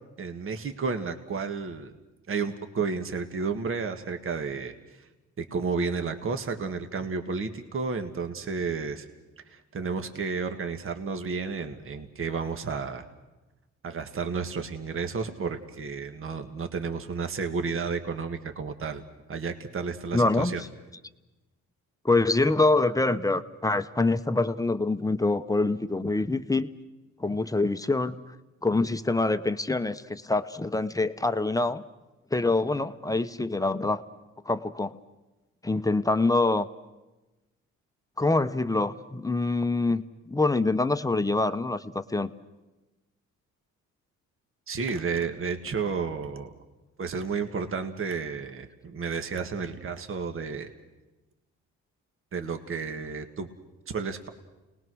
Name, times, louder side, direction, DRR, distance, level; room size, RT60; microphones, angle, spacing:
voice 1, 0.2-1.9 2.3-5.1 5.4-9.1 9.5-13.1 13.8-19.0 19.3-20.6 44.7-46.5 47.0-50.7 52.3-53.5 53.9-54.3, right 5 dB, 45° right, 7 dB, 1.7 m, -32 dB
voice 2, 20.1-20.5 22.0-26.7 27.2-28.2 28.6-31.8 32.3-34.0 34.4-35.0 35.6-36.7 38.2-40.0 40.3-42.3, left 2 dB, 10° left, 10 dB, 0.9 m, -25 dB
29.0 x 19.5 x 6.3 m, 1.1 s
cardioid pair, 90°, 30 cm